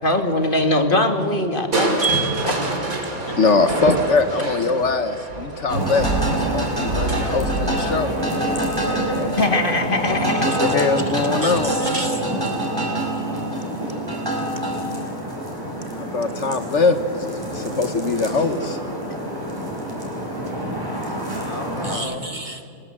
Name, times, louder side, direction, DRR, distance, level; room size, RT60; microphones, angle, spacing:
voice 1, 0.0-2.0 9.4-10.5 21.3-22.2, left 2 dB, 40° left, 2.1 m, -22 dB
Crushing, 1.7-9.7 11.2-11.7 12.2-12.3, right 2 dB, 85° right, 3.6 m, -27 dB
voice 2, 2.0-2.4 3.8-4.0 11.2-12.3 21.8-22.6, right 4 dB, 35° right, 1.5 m, -27 dB
voice 3, 3.4-8.1 10.1-10.2 10.4-11.8 15.9-18.8, left 3 dB, 60° left, 1.4 m, -22 dB
sound 1, 5.7-22.0, right 1 dB, 15° right, 4.9 m, -26 dB
23.5 x 20.0 x 7.7 m
omnidirectional pair, 1.4 m